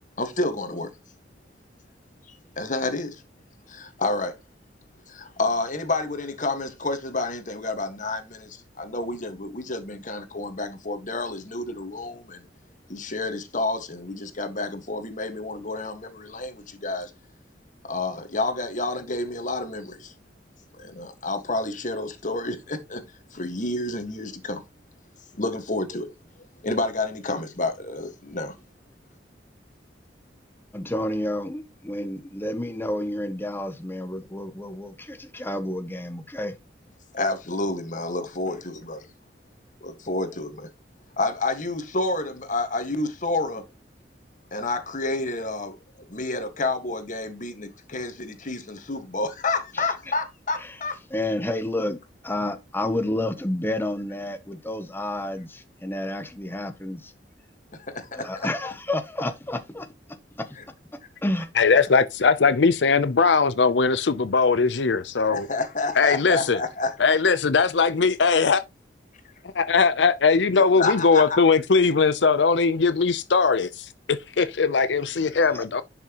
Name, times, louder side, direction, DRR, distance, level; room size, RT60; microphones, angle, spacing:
voice 1, 0.2-0.9 2.3-3.2 3.7-4.4 5.1-12.4 12.9-17.1 17.8-20.1 20.8-23.0 23.3-24.6 25.3-26.1 26.6-28.5 37.1-39.1 39.8-40.7 41.2-43.6 44.5-45.8 46.1-51.0 57.9-58.3 65.3-67.0 70.5-71.4, left 2 dB, 45° left, 1.6 m, -29 dB
voice 2, 30.7-36.6 49.7-49.9 50.6-50.8 51.1-57.1 58.1-60.6 61.2-61.5 75.5-75.6, left 1 dB, 15° left, 0.8 m, -30 dB
voice 3, 61.6-65.5 66.0-66.6 67.0-68.6 69.5-75.8, left 4 dB, 85° left, 0.6 m, -20 dB
10.5 x 5.9 x 3.0 m
head